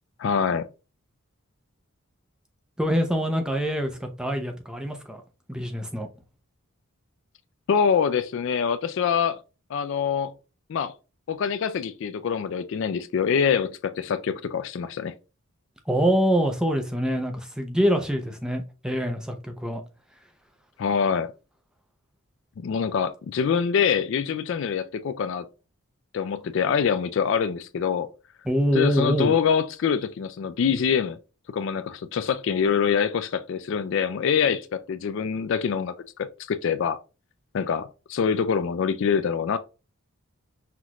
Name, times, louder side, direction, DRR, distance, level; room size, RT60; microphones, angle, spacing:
voice 1, 0.2-0.7 7.7-9.4 9.7-10.3 10.7-10.9 11.3-15.2 20.8-21.3 22.6-25.5 26.1-28.1 28.7-31.2 31.5-35.9 36.5-37.0 37.5-39.6, left 7 dB, 55° left, 0.3 m, -25 dB
voice 2, 2.8-5.2 5.5-6.1 15.9-19.8 28.5-29.4, equal, 5° right, 0.6 m, -25 dB
5.7 x 2.5 x 3.0 m
head